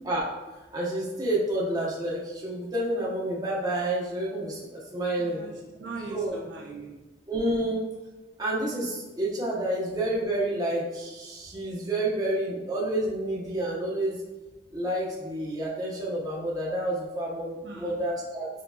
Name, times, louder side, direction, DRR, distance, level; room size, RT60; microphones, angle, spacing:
voice 1, 0.7-4.6 4.9-5.4 6.1-6.4 7.3-7.8 8.4-14.2 14.7-18.5, right 1 dB, 20° right, -6 dB, 0.9 m, -29 dB
voice 2, 5.2-7.0 17.6-18.0, right 2 dB, 75° right, -2 dB, 0.7 m, -40 dB
5.8 x 2.8 x 2.4 m, 1.2 s
head